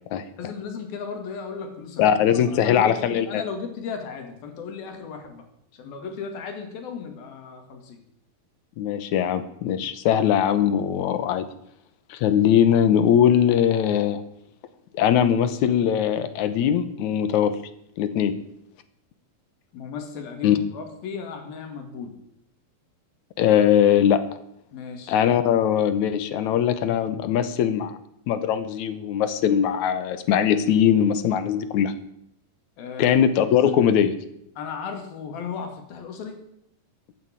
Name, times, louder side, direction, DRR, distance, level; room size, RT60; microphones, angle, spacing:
voice 1, 0.4-2.1 2.5-5.4 5.7-8.0 19.7-22.2 24.7-25.1 32.8-33.2 33.6-33.7 34.6-36.4, left 6 dB, 90° left, 5 dB, 4.1 m, -35 dB
voice 2, 2.0-3.4 8.8-11.5 12.1-14.2 14.9-17.6 18.0-18.3 20.4-20.6 23.4-24.2 25.1-28.0 28.3-31.9 33.0-34.1, left 9 dB, 70° left, 12 dB, 2.0 m, -20 dB
14.0 x 9.7 x 8.9 m, 0.76 s
omnidirectional pair, 4.1 m